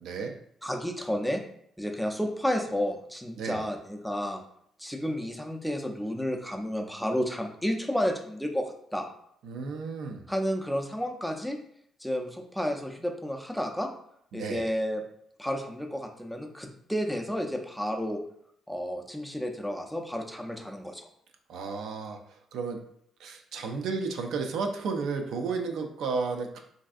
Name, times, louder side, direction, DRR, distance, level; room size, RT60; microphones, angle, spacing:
voice 1, 0.0-0.4 3.4-3.7 9.4-10.3 14.3-14.7 21.5-22.8 23.2-26.6, right 4 dB, 80° right, 4 dB, 0.4 m, -33 dB
voice 2, 0.6-1.4 1.8-4.4 4.8-9.1 10.3-11.6 12.0-13.9 14.3-15.0 15.4-18.2 18.7-21.1, equal, ahead, 3 dB, 0.4 m, -31 dB
3.2 x 2.6 x 2.4 m, 0.68 s
cardioid pair, 90°, 0 cm